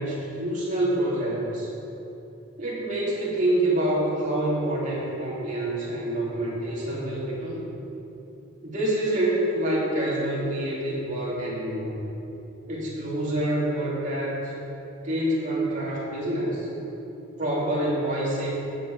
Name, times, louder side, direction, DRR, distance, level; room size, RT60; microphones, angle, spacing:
voice 1, 0.0-1.7 2.6-7.6 8.6-11.9 12.7-14.5 15.0-16.7 17.4-18.5, right 1 dB, 40° right, -6 dB, 2.8 m, -27 dB
15.0 x 6.4 x 4.9 m, 3.0 s
head